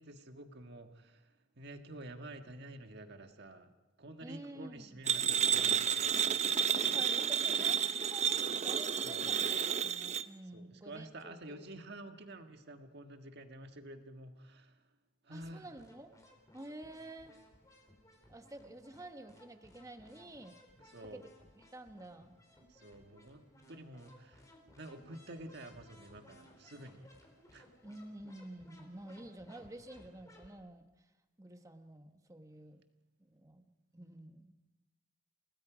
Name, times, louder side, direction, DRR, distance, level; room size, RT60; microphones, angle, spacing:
voice 1, 0.0-3.7 4.0-6.7 9.0-9.3 10.5-14.8 15.2-15.7 20.9-21.2 22.7-24.5 24.8-27.1 27.5-27.7, right 1 dB, 55° right, 6 dB, 1.6 m, -50 dB
voice 2, 4.2-5.0 6.9-11.7 15.3-16.1 16.5-17.3 18.3-20.5 21.0-21.3 21.6-22.4 27.8-30.8 31.4-32.8 33.2-33.6 33.9-34.5, right 1 dB, 15° right, 7 dB, 1.2 m, -50 dB
sound 1, 5.1-10.2, right 8 dB, 35° right, 0.7 m, -31 dB
sound 2, 15.3-30.5, left 1 dB, 15° left, 3.6 m, -61 dB
29.5 x 18.5 x 5.1 m, 1.0 s
head